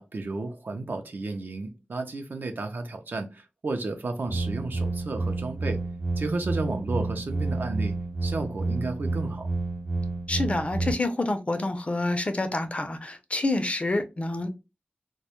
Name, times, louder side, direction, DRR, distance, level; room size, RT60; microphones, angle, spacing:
voice 1, 0.0-5.8 6.2-7.9 8.2-9.5, right 3 dB, 70° right, 0.5 m, -32 dB
sound 1, 4.3-10.9, right 3 dB, 50° right, 1.0 m, -30 dB
voice 2, 10.3-14.5, left 2 dB, 35° left, 0.4 m, -28 dB
2.2 x 2.0 x 2.8 m
wide cardioid pair, 80°, 3 cm